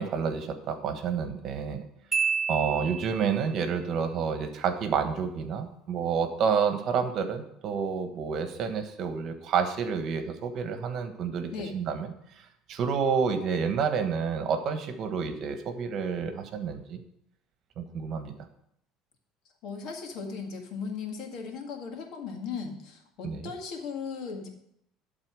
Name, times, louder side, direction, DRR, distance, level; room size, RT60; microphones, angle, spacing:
voice 1, 0.0-1.8 2.5-12.1 12.7-17.0 17.8-18.3 23.2-23.4, right 6 dB, 50° right, 8 dB, 1.3 m, -29 dB
Marimba xylophone, 2.1-3.5, right 5 dB, 25° right, 0.7 m, -30 dB
voice 2, 19.6-24.5, left 5 dB, 60° left, 3 dB, 1.9 m, -37 dB
11.5 x 4.1 x 6.3 m, 0.73 s
supercardioid pair, 115°, 0 cm